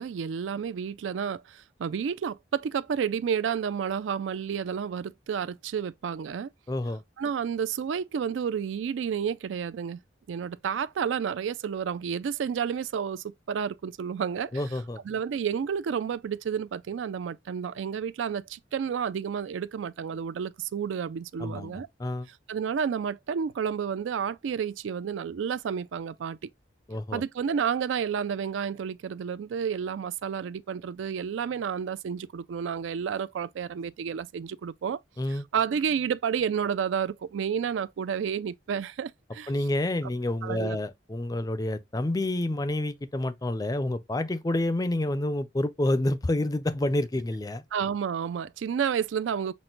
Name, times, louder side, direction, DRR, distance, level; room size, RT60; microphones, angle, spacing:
voice 1, 0.0-6.5 7.2-10.0 10.3-14.5 15.0-21.9 22.5-26.4 27.1-35.0 35.3-39.5 40.4-40.8 47.7-49.5, right 7 dB, 90° right, 0.3 m, -30 dB
voice 2, 6.7-7.0 14.5-15.0 21.4-22.3 26.9-27.2 35.2-35.4 39.5-47.6, left 1 dB, 20° left, 0.4 m, -28 dB
6.0 x 2.1 x 3.8 m
head